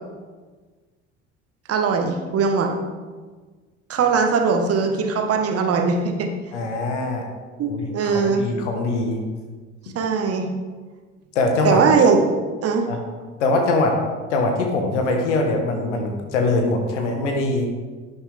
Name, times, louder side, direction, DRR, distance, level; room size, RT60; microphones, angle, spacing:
voice 1, 1.7-2.7 3.9-6.3 7.6-8.4 9.9-10.5 11.6-12.2 12.6-12.9, right 5 dB, 40° right, 4 dB, 1.5 m, -20 dB
voice 2, 6.5-7.3 7.7-9.2 11.3-11.8 12.9-13.0 13.4-14.0 14.3-17.7, left 2 dB, 70° left, 3 dB, 1.5 m, -22 dB
11.0 x 9.6 x 3.5 m, 1.4 s
figure-of-eight pair, 60°, 37 cm